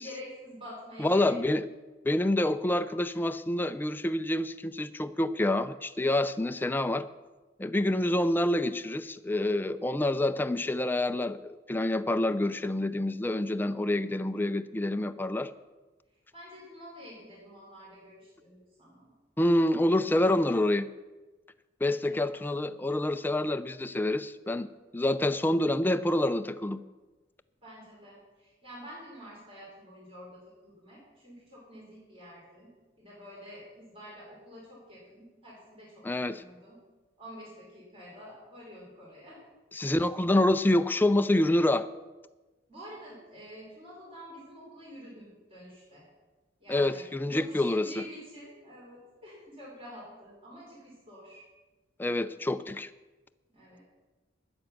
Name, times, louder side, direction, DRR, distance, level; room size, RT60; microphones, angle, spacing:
voice 1, 0.0-1.6 16.3-19.1 22.0-22.3 27.6-36.1 36.3-36.8 37.2-39.4 42.7-46.1 46.6-51.4 53.5-53.8, equal, 30° right, -7 dB, 4.6 m, -48 dB
voice 2, 1.0-1.7 2.1-7.1 7.6-15.5 19.4-20.9 21.8-26.8 36.0-36.4 39.7-41.9 46.7-47.9 52.0-52.9, left 1 dB, 10° left, 10 dB, 0.4 m, -27 dB
12.5 x 8.9 x 5.9 m, 1.2 s
head